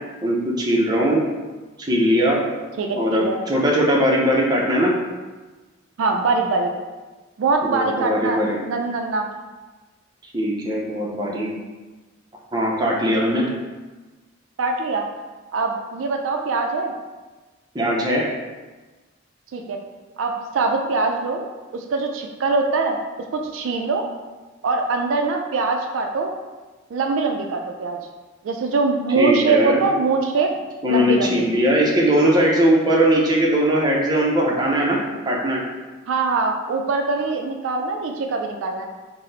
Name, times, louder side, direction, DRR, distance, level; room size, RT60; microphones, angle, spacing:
voice 1, 0.2-1.2 1.8-2.4 2.9-4.9 7.6-8.6 10.3-11.5 12.5-13.4 17.7-18.2 29.2-29.9 30.8-35.0 35.3-35.6, equal, 20° right, -3 dB, 0.5 m, -19 dB
voice 2, 2.8-3.4 6.0-6.7 7.4-9.3 14.6-15.1 15.5-16.9 19.5-19.8 20.2-21.4 21.7-23.0 23.3-24.1 24.6-26.3 26.9-28.0 28.4-30.5 30.9-31.5 36.1-38.9, right 4 dB, 75° right, 4 dB, 0.3 m, -23 dB
4.1 x 2.0 x 3.8 m, 1.2 s
head